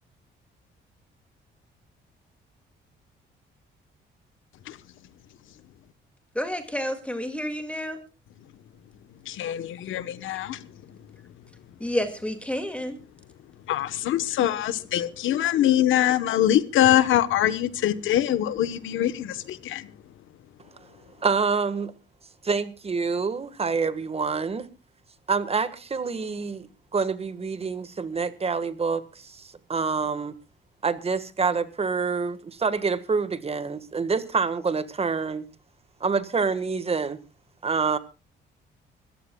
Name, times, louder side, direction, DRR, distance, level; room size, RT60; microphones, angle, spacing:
voice 1, 6.3-8.0 11.8-13.0, left 1 dB, 5° left, 2.1 m, -29 dB
voice 2, 9.3-10.6 13.7-19.9, left 12 dB, 80° left, 1.1 m, -23 dB
voice 3, 21.2-21.9 22.4-24.7 25.3-30.3 30.8-35.4 36.0-37.2 37.6-38.0, right 5 dB, 30° right, 1.5 m, -27 dB
25.5 x 14.5 x 2.3 m
cardioid pair, 90°, 20 cm